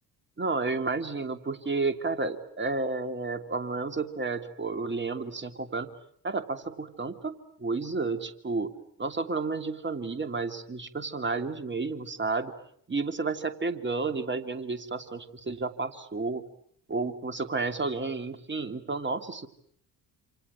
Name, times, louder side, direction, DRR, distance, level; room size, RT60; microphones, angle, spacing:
voice 1, 0.4-5.9 6.2-8.7 9.0-12.5 12.9-16.4 16.9-19.5, right 3 dB, 20° right, 9 dB, 3.0 m, -31 dB
28.0 x 28.0 x 7.5 m, 0.64 s
figure-of-eight pair, 55°, 48 cm